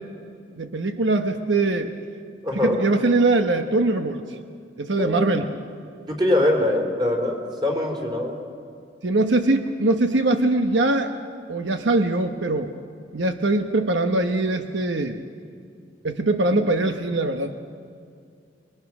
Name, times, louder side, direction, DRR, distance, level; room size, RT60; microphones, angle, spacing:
voice 1, 0.6-1.9 2.5-4.2 4.8-5.5 9.0-11.1 11.5-12.7 13.1-15.2 16.0-17.5, right 2 dB, 80° right, 7 dB, 1.1 m, -22 dB
voice 2, 2.4-2.8 5.0-5.5 6.1-8.4, left 1 dB, 25° right, 1 dB, 3.8 m, -23 dB
27.0 x 23.0 x 6.1 m, 2.3 s
head